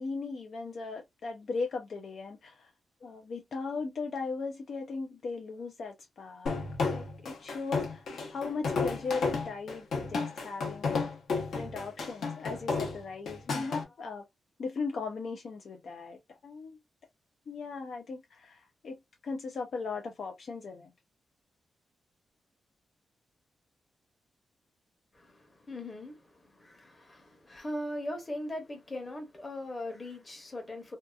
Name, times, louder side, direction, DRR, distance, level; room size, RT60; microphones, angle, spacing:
voice 1, 0.0-2.7 3.0-6.5 6.9-11.1 11.4-14.3 14.6-16.8 17.5-20.9, left 4 dB, 50° left, 0.4 m, -38 dB
sound 1, 6.5-13.8, left 4 dB, 65° left, 0.9 m, -32 dB
voice 2, 25.1-31.0, left 1 dB, 20° left, 0.9 m, -40 dB
2.7 x 2.3 x 2.3 m
wide cardioid pair, 175°, 0 cm